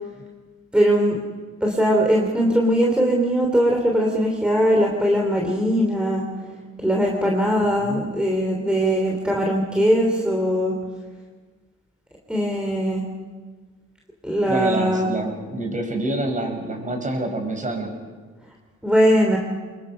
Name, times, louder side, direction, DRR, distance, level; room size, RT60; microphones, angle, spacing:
voice 1, 0.7-1.2 1.6-6.2 6.8-10.8 12.3-13.0 14.2-15.1 18.8-19.4, equal, 5° right, 0 dB, 3.3 m, -20 dB
voice 2, 14.5-17.9, right 2 dB, 25° right, 3 dB, 5.9 m, -27 dB
25.5 x 22.0 x 5.7 m, 1.4 s
cardioid pair, 90°, 30 cm